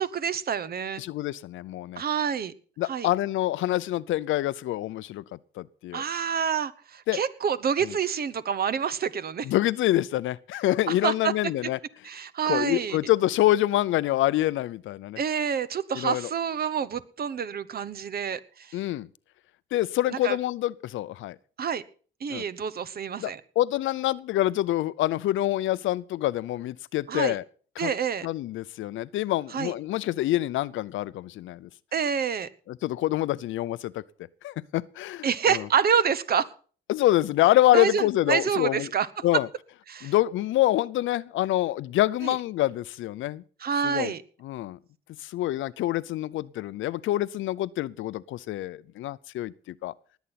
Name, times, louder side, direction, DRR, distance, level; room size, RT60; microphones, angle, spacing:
voice 1, 0.0-1.0 2.0-2.5 2.8-3.1 5.9-9.5 11.0-11.3 12.0-13.0 15.2-18.8 20.1-20.4 21.6-21.8 22.2-23.4 27.1-27.4 27.8-28.3 29.5-29.7 31.9-32.5 35.2-36.5 37.7-39.2 39.9-40.1 42.2-42.3 43.6-44.2, right 7 dB, 50° right, 1.0 m, -27 dB
voice 2, 1.0-2.0 2.8-5.2 5.6-6.0 7.1-7.2 7.8-7.9 9.4-11.8 12.5-15.2 15.9-16.3 18.7-19.1 19.7-21.4 22.3-22.4 23.2-27.4 27.8-27.9 28.2-31.7 32.7-34.0 34.4-35.7 36.9-38.9 39.2-39.5 40.0-43.4 43.8-44.1 44.4-44.8 45.2-49.5 49.8-49.9, left 15 dB, 80° left, 0.6 m, -26 dB
20.0 x 8.2 x 5.8 m
cardioid pair, 90°, 20 cm